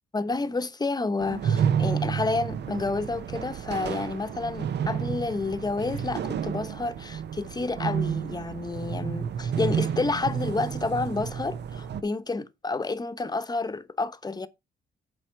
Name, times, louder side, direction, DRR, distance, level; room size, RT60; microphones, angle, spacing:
voice 1, 0.1-14.5, left 3 dB, 20° left, 1.0 m, -30 dB
sound 1, 1.2-12.0, right 8 dB, 60° right, 0.8 m, -30 dB
7.6 x 4.9 x 5.7 m
cardioid pair, 90°, 20 cm